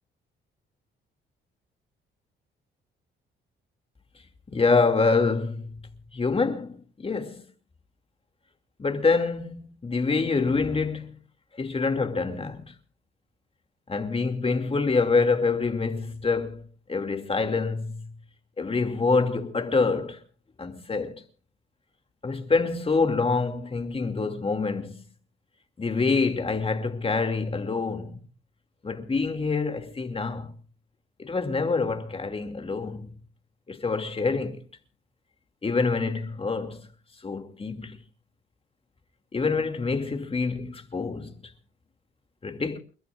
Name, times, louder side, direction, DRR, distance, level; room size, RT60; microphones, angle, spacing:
voice 1, 4.5-5.8 6.1-7.4 8.8-11.2 11.6-12.7 13.9-18.1 18.6-20.2 20.6-21.2 22.2-25.0 25.8-28.2 28.8-30.5 31.2-33.1 33.7-34.6 35.6-36.9 37.2-38.0 39.3-41.3 42.4-42.8, left 4 dB, 30° left, 2.5 m, -26 dB
30.0 x 13.5 x 2.5 m
cardioid pair, 90°, 20 cm